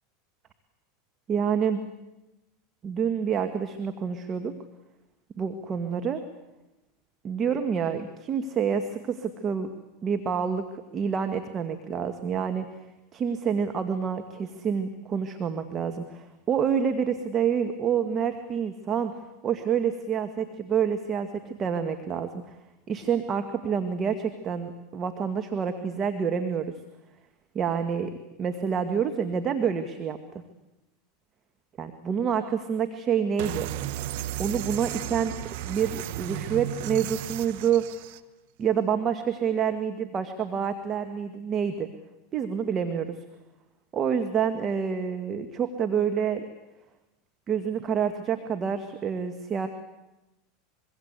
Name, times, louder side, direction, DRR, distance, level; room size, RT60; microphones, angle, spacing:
voice 1, 1.3-1.8 2.8-4.5 5.4-6.2 7.2-9.7 10.0-10.6 10.9-12.7 13.1-19.1 19.4-22.4 22.9-26.6 27.5-30.2 31.8-33.7 34.4-35.3 35.6-37.8 38.6-41.9 42.3-43.2 43.9-46.5 47.5-49.7, right 7 dB, 35° right, 7 dB, 1.8 m, -27 dB
sound 1, 33.4-38.2, right 13 dB, 65° right, 1.1 m, -34 dB
25.0 x 23.5 x 8.2 m, 0.99 s
hypercardioid pair, 105°, 0 cm